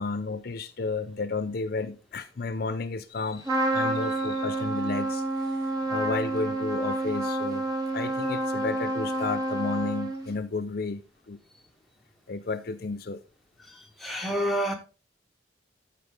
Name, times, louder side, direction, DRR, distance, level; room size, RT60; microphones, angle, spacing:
voice 1, 0.0-7.7 7.9-11.4 12.3-13.2, left 3 dB, 50° left, 0.5 m, -32 dB
Trumpet, 3.4-10.4, right 1 dB, 20° right, 2.0 m, -29 dB
voice 2, 13.7-14.7, equal, ahead, 1.6 m, -29 dB
13.0 x 4.7 x 3.7 m
head